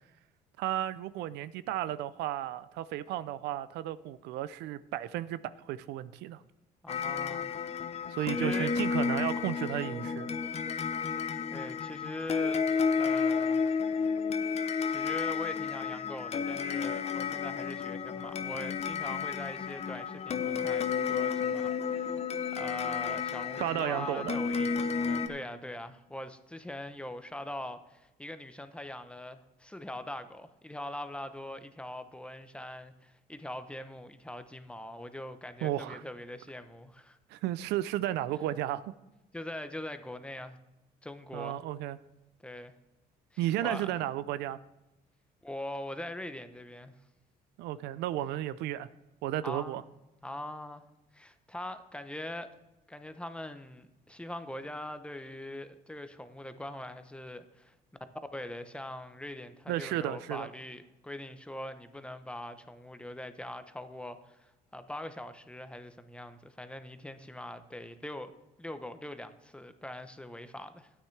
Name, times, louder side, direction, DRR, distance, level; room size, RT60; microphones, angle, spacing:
voice 1, 0.6-6.4 8.1-10.3 23.6-24.4 35.6-36.0 37.3-38.8 41.3-42.0 43.4-44.6 47.6-48.9 49.2-49.8 59.7-60.5, right 13 dB, 85° right, 0.5 m, -33 dB
voice 2, 6.8-7.5 8.2-8.7 11.5-12.6 13.0-13.6 14.9-22.2 22.5-37.2 39.3-40.6 41.0-41.6 42.4-42.7 43.3-43.9 45.4-47.0 49.4-49.8 50.2-50.9 51.1-52.5 52.9-57.7 58.0-68.3 68.6-70.9, left 1 dB, 5° left, 0.7 m, -42 dB
sound 1, 6.9-25.3, left 5 dB, 40° left, 0.8 m, -32 dB
13.0 x 9.3 x 3.3 m
cardioid pair, 110°, 17 cm